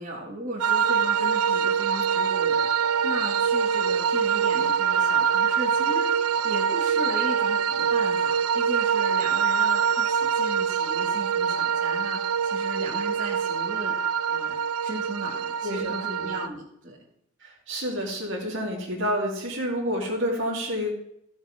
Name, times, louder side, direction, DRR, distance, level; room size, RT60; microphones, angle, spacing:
voice 1, 0.0-17.0, right 1 dB, 35° right, -6 dB, 2.0 m, -36 dB
sound 1, 0.6-16.5, right 7 dB, 85° right, 0.4 m, -24 dB
voice 2, 15.6-16.0 17.4-20.9, equal, 60° right, -2 dB, 3.0 m, -29 dB
15.0 x 7.1 x 3.7 m, 0.74 s
head